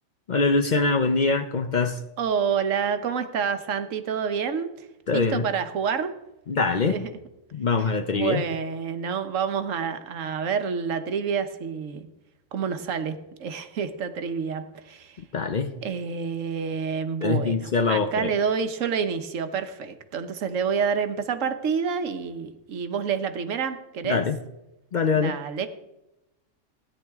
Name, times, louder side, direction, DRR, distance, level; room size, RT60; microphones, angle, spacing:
voice 1, 0.3-2.0 5.1-5.5 6.5-7.1 7.5-8.4 15.3-15.7 17.2-18.3 24.0-24.4 24.9-25.4, left 4 dB, 50° left, 7 dB, 0.6 m, -23 dB
voice 2, 2.2-4.9 5.1-6.1 6.9-7.1 8.1-12.1 12.5-15.2 15.8-24.2 25.2-25.7, right 6 dB, 85° right, 9 dB, 1.3 m, -28 dB
16.5 x 9.9 x 3.5 m, 0.93 s
omnidirectional pair, 1.3 m